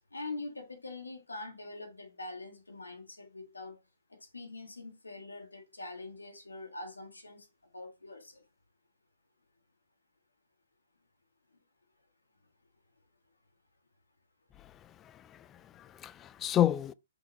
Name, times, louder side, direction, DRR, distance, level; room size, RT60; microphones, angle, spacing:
voice 1, 0.1-3.8 4.1-7.5 7.7-8.4, left 2 dB, 85° left, 1.7 m, -44 dB
voice 2, 14.6-16.9, left 11 dB, 20° left, 0.3 m, -32 dB
5.6 x 5.5 x 3.1 m
figure-of-eight pair, 125°, 0 cm